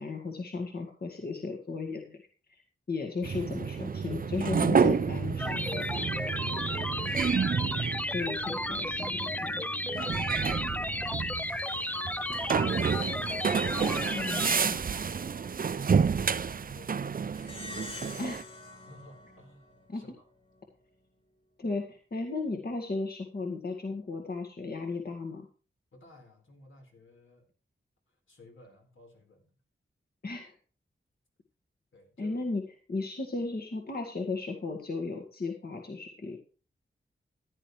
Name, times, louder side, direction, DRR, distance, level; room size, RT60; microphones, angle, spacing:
voice 1, 0.0-2.2 2.5-2.6 2.9-5.8 8.1-9.6 14.1-14.8 18.2-18.4 19.9-20.0 21.6-25.5 30.2-30.5 32.2-32.6 32.9-36.4, left 3 dB, 50° left, 2 dB, 1.8 m, -35 dB
sound 1, 3.2-18.4, right 6 dB, 45° right, 0.5 m, -30 dB
sound 2, 5.4-14.6, left 1 dB, 10° left, 0.5 m, -33 dB
voice 2, 7.2-7.7 8.1-8.3 11.0-12.7 15.1-18.3 18.8-20.3 25.9-27.5 28.1-29.5 31.9-32.4, left 2 dB, 80° left, 2 dB, 4.3 m, -57 dB
Plucked string instrument, 17.4-20.2, left 1 dB, 30° left, 4.3 m, -45 dB
15.5 x 10.5 x 3.2 m, 0.38 s
wide cardioid pair, 110°, 20 cm